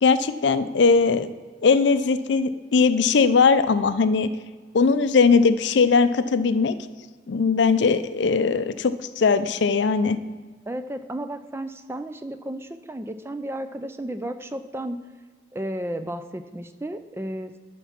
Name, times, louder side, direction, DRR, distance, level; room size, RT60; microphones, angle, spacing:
voice 1, 0.0-1.3 1.6-4.3 4.7-6.7 7.3-10.2, left 5 dB, 65° left, 12 dB, 0.4 m, -20 dB
voice 2, 10.7-15.0 15.5-17.6, right 1 dB, 15° right, 9 dB, 0.3 m, -33 dB
12.5 x 4.6 x 5.8 m, 1.5 s
head